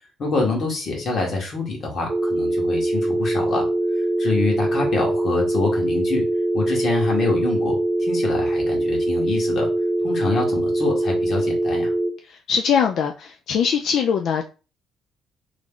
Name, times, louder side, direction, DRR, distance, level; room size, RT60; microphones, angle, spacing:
voice 1, 0.2-3.7 4.2-6.2 6.5-9.7 10.0-11.9, left 3 dB, 55° left, 1.5 m, -26 dB
sound 1, 2.1-12.1, right 1 dB, 40° right, 0.8 m, -22 dB
voice 2, 12.3-14.4, left 7 dB, 70° left, 0.3 m, -22 dB
3.1 x 2.4 x 3.7 m
cardioid pair, 85°, 0 cm